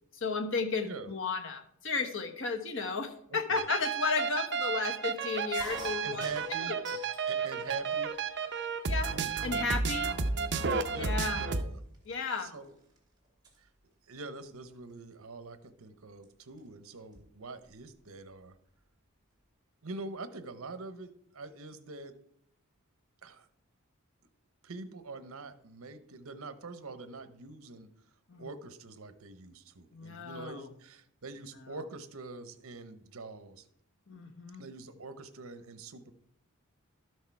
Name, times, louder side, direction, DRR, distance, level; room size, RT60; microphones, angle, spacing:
voice 1, 0.1-6.3 6.6-6.7 8.9-10.1 10.9-11.4 12.1-12.5 28.3-28.5 29.9-30.7 34.1-34.6, left 4 dB, 60° left, 5 dB, 1.2 m, -34 dB
voice 2, 3.3-3.7 6.0-7.0 7.3-8.1 10.9-11.8 12.4-12.7 13.6-13.7 14.1-18.6 19.8-22.2 23.2-23.5 24.6-27.9 28.4-33.7 34.6-36.1, right 3 dB, 80° right, 12 dB, 0.9 m, -44 dB
sound 1, 3.6-11.6, right 5 dB, 55° right, 0.7 m, -32 dB
sound 2, 5.5-7.3 7.7-8.4 9.0-9.1 9.4-9.8 10.4-10.5 10.7-13.0 13.2-13.6 14.9-15.1 16.2-16.3 16.6-16.7 16.9-17.8, right 3 dB, 20° right, 2.5 m, -48 dB
12.5 x 6.5 x 4.7 m, 0.71 s
head